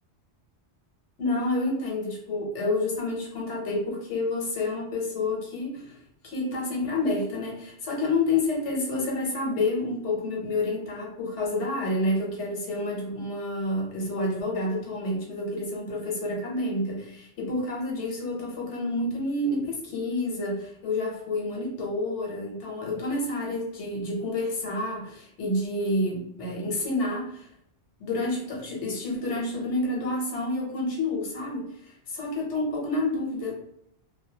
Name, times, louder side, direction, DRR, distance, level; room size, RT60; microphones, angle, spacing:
voice 1, 1.2-6.0 6.2-27.5 28.0-33.7, left 2 dB, 85° left, -2 dB, 1.1 m, -29 dB
2.4 x 2.2 x 2.7 m, 0.74 s
omnidirectional pair, 1.1 m